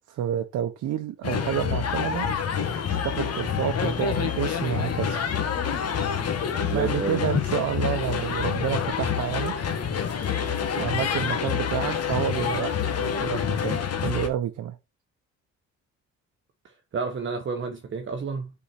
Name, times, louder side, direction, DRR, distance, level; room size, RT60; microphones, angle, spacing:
voice 1, 0.1-2.3 2.9-5.2 6.7-9.5 10.8-12.7 13.0-14.8, right 10 dB, 75° right, 0.8 m, -29 dB
sound 1, 1.2-14.3, left 7 dB, 55° left, 1.4 m, -27 dB
voice 2, 6.6-7.3 16.6-18.5, right 4 dB, 40° right, 0.9 m, -31 dB
5.6 x 4.7 x 4.2 m
cardioid pair, 90°, 30 cm